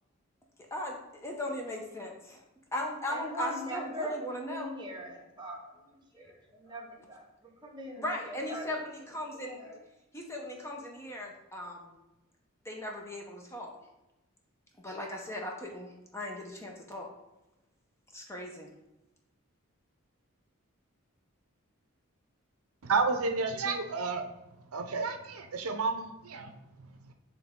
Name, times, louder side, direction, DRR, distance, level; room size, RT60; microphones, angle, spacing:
voice 1, 1.2-2.4 2.7-4.7 6.2-6.3 8.0-8.8 9.1-9.8 10.1-11.9 12.6-13.7 14.8-17.1 18.1-18.7, left 1 dB, 10° left, 0 dB, 0.8 m, -38 dB
voice 2, 3.1-5.8 6.2-8.8, equal, 20° right, 0 dB, 0.9 m, -41 dB
voice 3, 22.8-24.3 24.7-27.1, right 4 dB, 85° right, 6 dB, 0.6 m, -31 dB
8.5 x 3.4 x 3.7 m, 0.95 s
head